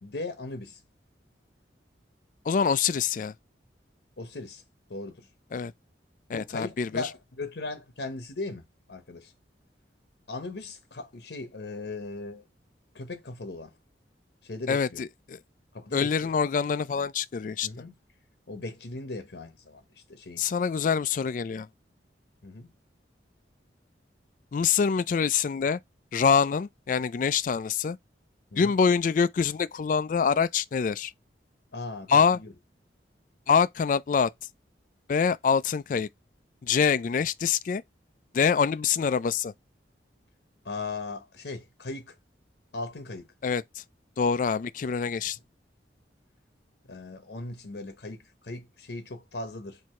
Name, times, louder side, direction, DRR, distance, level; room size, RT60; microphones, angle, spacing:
voice 1, 0.0-0.8 4.2-4.6 4.9-5.3 6.3-9.3 10.3-12.4 12.9-13.8 14.4-15.0 15.7-16.3 17.6-17.9 18.5-20.5 22.4-22.7 28.5-28.7 31.7-32.5 40.6-42.1 42.7-43.3 46.9-49.8, left 2 dB, 65° left, 0.8 m, -38 dB
voice 2, 2.5-3.3 5.5-5.7 6.3-7.0 14.7-15.4 15.9-17.7 20.4-21.7 24.5-25.8 26.1-28.0 28.6-31.1 32.1-32.4 33.5-34.3 35.1-36.1 36.6-37.8 38.3-39.5 43.4-43.8 44.2-45.4, left 6 dB, 45° left, 0.3 m, -25 dB
4.6 x 2.7 x 4.2 m
head